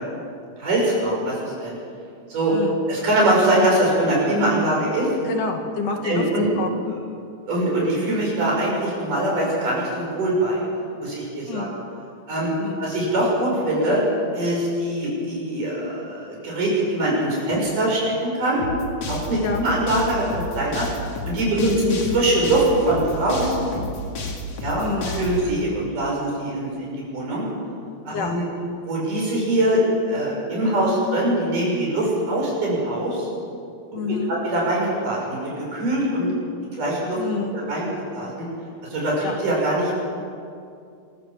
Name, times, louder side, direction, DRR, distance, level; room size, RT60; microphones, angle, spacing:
voice 1, 0.6-1.8 2.3-2.5 2.9-5.1 6.0-6.5 7.5-10.6 11.0-11.7 12.3-12.5 12.8-14.0 14.3-18.6 19.1-20.9 21.3-23.8 24.6-24.8 25.1-27.5 28.1-28.4 28.8-33.3 33.9-34.0 34.3-36.3 36.8-37.2 37.5-38.5 38.9-40.0, right 1 dB, 75° right, -4 dB, 8.4 m, -23 dB
voice 2, 5.3-6.3 6.6-6.7 11.5-11.7 12.6-12.9 19.4-19.6 21.5-21.8 24.8-25.2 28.1-28.3 33.9-34.4 37.2-37.6 39.2-39.4, left 4 dB, 75° left, 3 dB, 3.4 m, -28 dB
sound 1, 18.6-25.4, left 2 dB, 50° left, 3.0 m, -31 dB
27.0 x 14.0 x 7.5 m, 2.4 s
omnidirectional pair, 3.8 m